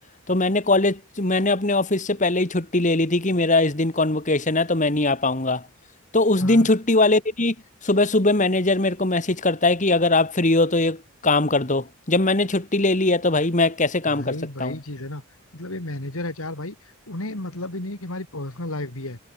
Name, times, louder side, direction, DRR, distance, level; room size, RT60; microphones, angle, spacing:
voice 1, 0.3-5.6 6.1-7.6 7.8-14.8, left 2 dB, 35° left, 1.9 m, -21 dB
voice 2, 14.1-15.2 15.5-16.8 17.1-19.2, left 1 dB, 70° left, 3.0 m, -32 dB
head